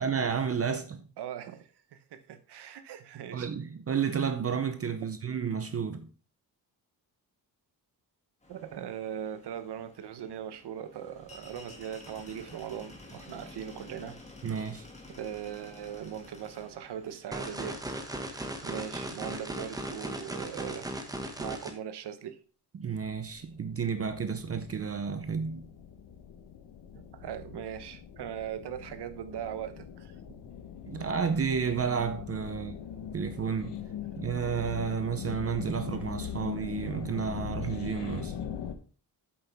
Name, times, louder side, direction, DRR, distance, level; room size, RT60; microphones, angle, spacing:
voice 1, 0.0-1.1 3.3-6.1 14.4-14.9 22.7-25.7 30.8-32.8 33.1-33.8 34.2-38.3, right 6 dB, 35° right, 0.6 m, -31 dB
voice 2, 1.2-3.5 8.5-14.2 15.1-18.0 18.6-20.9 21.4-22.4 26.9-30.1, right 9 dB, 75° right, 1.0 m, -40 dB
sound 1, 8.4-18.0, left 2 dB, 15° left, 2.1 m, -51 dB
sound 2, 17.3-21.7, right 1 dB, 10° right, 1.1 m, -37 dB
sound 3, 23.0-38.7, left 8 dB, 85° left, 1.1 m, -41 dB
8.4 x 7.5 x 3.5 m
wide cardioid pair, 160°, 41 cm